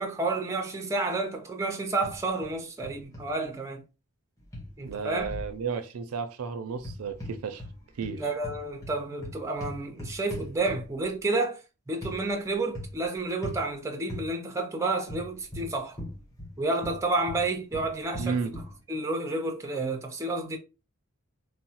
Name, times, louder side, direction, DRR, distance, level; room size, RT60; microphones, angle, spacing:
voice 1, 0.0-3.8 4.8-5.3 8.2-11.6 11.9-16.0 16.6-18.4 18.9-20.6, right 2 dB, 15° right, 0.4 m, -30 dB
sound 1, 2.0-2.5 2.8-3.3 4.5-5.5 6.8-7.7 8.0-11.0 12.0-12.2 12.7-13.0 13.4-13.6 14.1-14.3 15.1-16.5 16.8-18.7, left 1 dB, 15° left, 1.0 m, -39 dB
voice 2, 4.8-7.6 8.0-8.2 18.2-18.6, right 5 dB, 80° right, 0.4 m, -33 dB
2.9 x 2.0 x 2.8 m
head